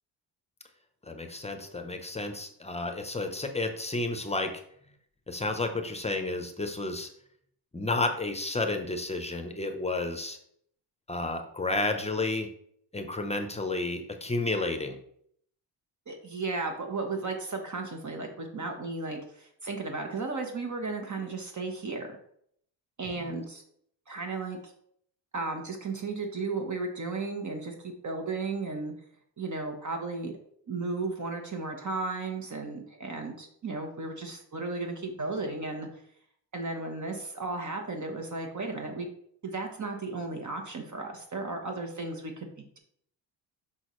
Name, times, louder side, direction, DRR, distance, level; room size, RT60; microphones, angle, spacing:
voice 1, 1.1-4.6 5.3-7.1 7.7-10.4 11.1-12.5 12.9-14.9 23.2-23.3, left 2 dB, 15° left, 6 dB, 0.8 m, -31 dB
voice 2, 16.1-22.1 23.0-23.6 24.1-24.7 25.3-28.9 29.4-30.3 30.7-35.9 36.5-39.1 39.4-42.5, right 3 dB, 40° right, 3 dB, 1.1 m, -34 dB
6.2 x 5.7 x 3.1 m, 0.66 s
cardioid pair, 95°, 46 cm